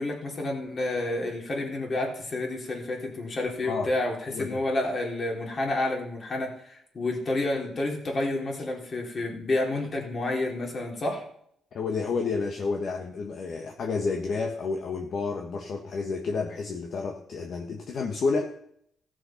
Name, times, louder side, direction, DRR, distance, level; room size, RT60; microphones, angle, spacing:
voice 1, 0.0-11.2, left 2 dB, 40° left, 0 dB, 3.6 m, -29 dB
voice 2, 4.3-4.6 11.7-18.5, left 4 dB, 60° left, 3 dB, 1.3 m, -30 dB
15.5 x 6.3 x 5.9 m, 0.69 s
cardioid pair, 90°, 0 cm